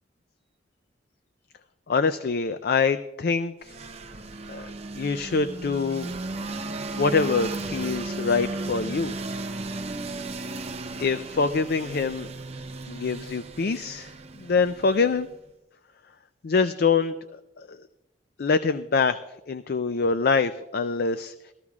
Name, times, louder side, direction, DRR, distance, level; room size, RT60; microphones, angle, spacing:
voice 1, 1.9-3.7 4.5-4.7 4.9-6.1 7.0-9.1 11.0-12.3 12.9-14.1 14.4-15.3 16.4-17.8 18.4-19.2 19.5-21.3, left 4 dB, 55° left, 11 dB, 0.4 m, -25 dB
sound 1, 3.6-15.4, right 2 dB, 35° right, 0.7 m, -35 dB
19.5 x 14.0 x 2.4 m, 0.95 s
head